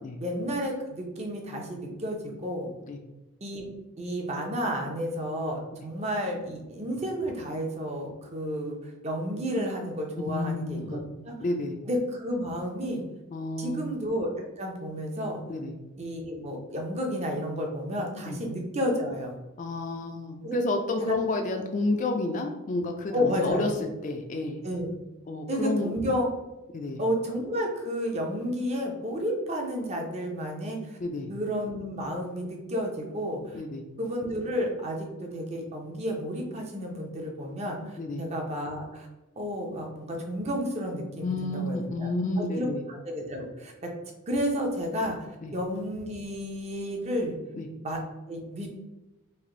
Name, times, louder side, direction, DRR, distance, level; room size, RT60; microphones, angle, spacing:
voice 1, 0.2-2.7 3.4-3.7 4.0-11.3 11.9-13.0 13.6-15.4 16.0-19.3 20.4-20.6 21.0-21.2 23.1-23.7 24.6-24.9 25.5-26.3 27.0-31.0 31.3-33.6 34.0-39.1 39.4-42.1 42.4-43.9 44.3-45.2 45.5-47.4 47.8-48.0 48.3-48.7, equal, 30° right, 1 dB, 0.6 m, -31 dB
voice 2, 10.2-10.6 10.8-11.0 11.4-11.8 13.3-13.8 15.5-15.7 18.3-18.4 19.6-23.7 24.0-24.6 25.3-25.9 26.7-27.0 31.0-31.3 33.5-33.8 38.0-38.2 41.2-42.8 45.4-45.5 47.5-47.7, left 2 dB, 35° left, 4 dB, 0.3 m, -30 dB
3.3 x 2.5 x 3.7 m, 1.0 s
head